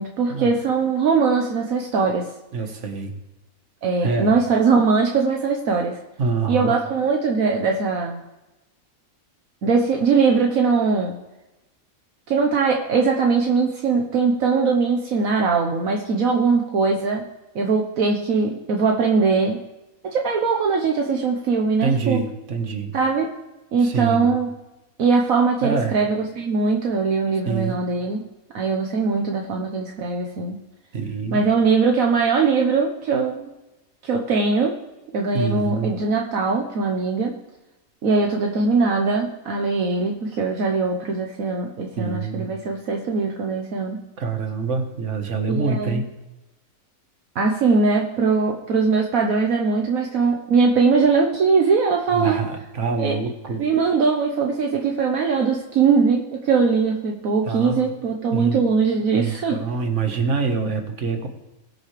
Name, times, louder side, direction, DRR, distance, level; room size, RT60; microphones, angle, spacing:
voice 1, 0.0-2.3 3.8-6.0 6.5-8.2 9.6-11.2 12.3-17.2 17.5-19.6 20.0-22.2 22.9-23.3 23.7-24.5 25.0-28.2 28.5-30.6 31.3-33.5 34.0-34.7 35.1-37.4 38.0-44.0 45.5-46.0 47.3-52.4 53.0-53.2 53.6-59.6, right 4 dB, 70° right, 1 dB, 1.5 m, -21 dB
voice 2, 2.5-3.1 4.0-4.4 6.2-6.7 21.8-22.9 23.8-24.3 25.6-26.0 27.5-27.8 30.9-31.4 35.3-36.0 42.0-42.5 44.2-46.1 52.1-53.6 57.5-57.9 58.3-58.6 59.1-61.3, right 4 dB, 55° right, 5 dB, 1.8 m, -25 dB
21.0 x 7.1 x 3.3 m, 1.0 s
omnidirectional pair, 1.5 m